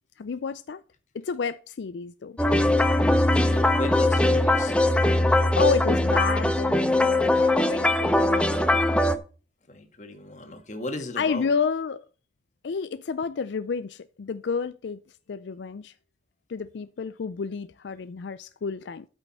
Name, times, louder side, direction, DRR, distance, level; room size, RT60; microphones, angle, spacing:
voice 1, 0.2-0.8 1.1-2.4 5.6-9.2 11.2-12.0 12.6-15.0 15.3-15.9 16.5-19.1, left 5 dB, 75° left, 0.4 m, -30 dB
sound 1, 2.4-9.2, left 1 dB, 5° left, 0.6 m, -21 dB
voice 2, 3.2-4.7 9.7-11.5, left 1 dB, 40° left, 1.6 m, -36 dB
13.0 x 5.7 x 4.2 m
head